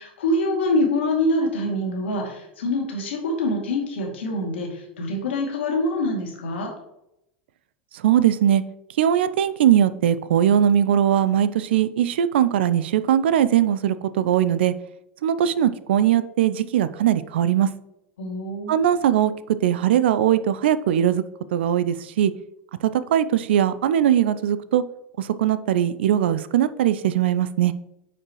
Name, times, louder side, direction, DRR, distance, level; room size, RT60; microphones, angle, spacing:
voice 1, 0.0-6.7 18.2-18.8, left 1 dB, 70° left, 0 dB, 2.4 m, -25 dB
voice 2, 7.9-8.6 9.0-14.7 15.2-17.7 18.7-21.2 21.5-22.3 22.8-24.8 25.2-27.7, right 10 dB, 65° right, 15 dB, 0.4 m, -20 dB
9.7 x 4.9 x 3.0 m, 0.83 s
figure-of-eight pair, 85°, 6 cm